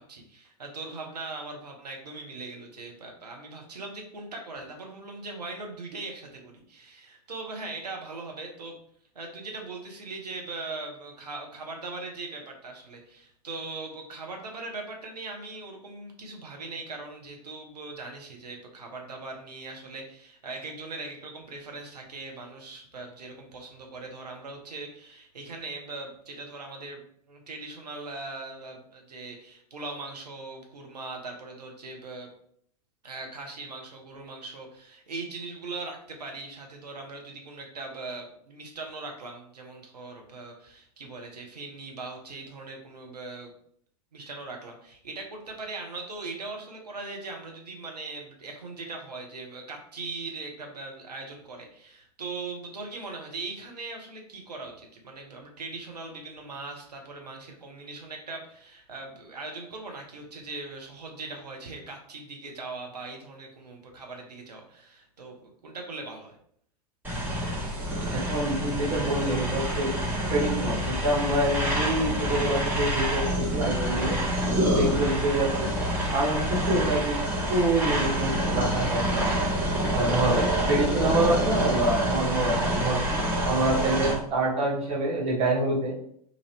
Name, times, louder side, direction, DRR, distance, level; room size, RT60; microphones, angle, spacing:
voice 1, 0.0-8.8 9.1-27.0 27.3-32.3 33.0-43.5 44.1-66.4, right 3 dB, 75° right, 2 dB, 0.8 m, -40 dB
sound 1, 67.0-84.1, equal, 10° right, 1.2 m, -27 dB
voice 2, 68.1-69.9 70.3-74.2 74.7-75.7 76.1-77.1 77.5-79.2 79.9-83.0 83.4-85.9, right 2 dB, 30° right, -6 dB, 1.4 m, -26 dB
2.9 x 2.5 x 3.2 m, 0.65 s
figure-of-eight pair, 90°, 21 cm